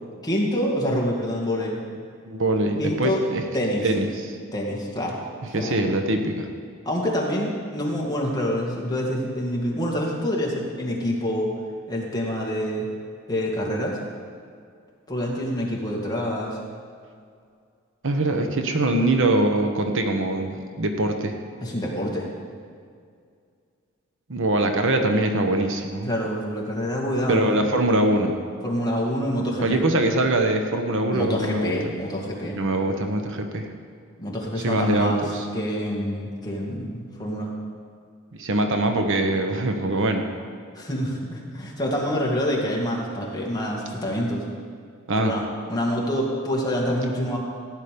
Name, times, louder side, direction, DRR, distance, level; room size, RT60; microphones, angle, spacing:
voice 1, 0.2-1.8 2.8-3.2 3.5-3.9 4.5-5.2 5.5-5.8 6.9-11.5 11.9-12.9 13.3-14.0 15.1-16.6 21.6-22.3 26.1-27.6 28.6-29.8 31.1-32.6 34.2-35.2 35.5-37.5 40.7-44.4 45.2-47.4, equal, 20° left, -3 dB, 2.1 m, -26 dB
voice 2, 2.2-3.4 3.8-4.4 5.5-6.5 18.0-21.3 24.3-26.1 27.3-28.4 29.6-31.7 32.5-33.7 34.6-35.5 38.4-40.2 45.1-45.3, right 1 dB, 65° right, 5 dB, 1.1 m, -23 dB
15.5 x 9.4 x 5.2 m, 2.2 s
head